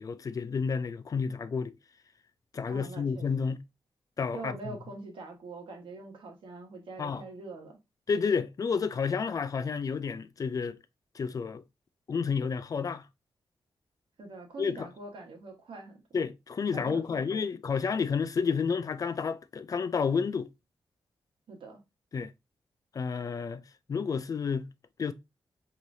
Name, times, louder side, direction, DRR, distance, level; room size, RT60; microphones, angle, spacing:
voice 1, 0.0-1.7 2.5-3.6 4.2-4.8 7.0-7.2 8.1-10.8 11.1-11.6 12.1-13.1 14.6-14.9 16.1-20.5 22.1-22.3 22.9-23.6 23.9-24.7 25.0-25.1, left 5 dB, 40° left, 0.3 m, -30 dB
voice 2, 2.7-3.3 4.3-7.8 14.2-16.0 16.7-17.4 21.5-21.8, right 3 dB, 70° right, 1.3 m, -44 dB
4.7 x 2.9 x 2.6 m
wide cardioid pair, 130°, 9 cm